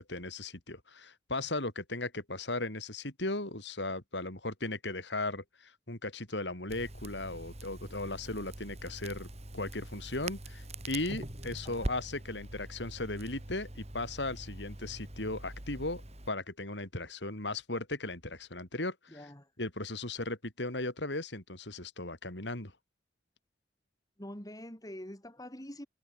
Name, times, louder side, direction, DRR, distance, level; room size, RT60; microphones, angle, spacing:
voice 1, 0.0-9.3 9.5-19.2 19.6-22.7, left 2 dB, 70° left, 5.0 m, -37 dB
Crackle, 6.7-16.3, right 1 dB, 35° right, 4.7 m, -43 dB
voice 2, 11.6-12.0 19.1-19.5 24.2-25.9, left 1 dB, 20° left, 5.4 m, -45 dB
head